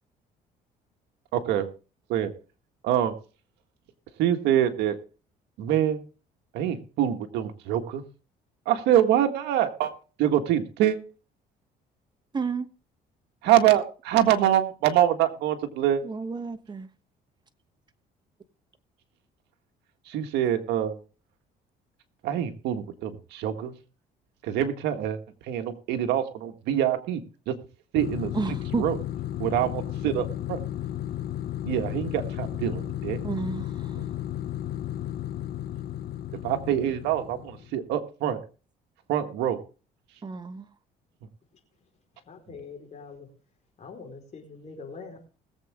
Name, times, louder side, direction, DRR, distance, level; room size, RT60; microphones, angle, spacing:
voice 1, 1.3-1.7 2.1-2.3 2.8-3.1 4.2-5.0 5.6-6.0 6.5-8.0 8.6-9.9 10.2-11.0 13.4-16.0 20.1-21.0 22.2-23.7 24.4-25.2 25.5-27.2 27.5-27.6 27.9-28.3 28.8-29.0 29.4-30.6 31.6-33.2 36.4-38.4 39.1-39.6, right 11 dB, 85° right, 1.7 m, -25 dB
voice 2, 12.3-12.7 16.0-16.9 28.3-28.8 33.2-33.7 40.2-40.7, right 4 dB, 25° right, 1.2 m, -31 dB
sound 1, 28.0-37.8, left 12 dB, 60° left, 0.8 m, -34 dB
voice 3, 42.3-43.3 43.8-45.2, left 4 dB, 45° left, 4.6 m, -43 dB
20.5 x 7.8 x 3.7 m
cardioid pair, 110°, 17 cm